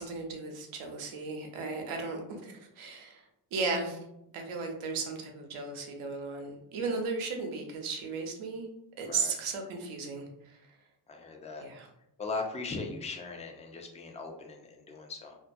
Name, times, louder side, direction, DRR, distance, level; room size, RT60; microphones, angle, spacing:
voice 1, 0.0-3.2 3.5-4.0 4.3-8.7 9.0-10.6 11.6-11.9, right 4 dB, 75° right, 3 dB, 0.7 m, -35 dB
voice 2, 11.1-11.6 12.2-15.4, left 3 dB, 15° left, 3 dB, 0.4 m, -39 dB
2.5 x 2.2 x 2.6 m, 0.82 s
cardioid pair, 70°, 49 cm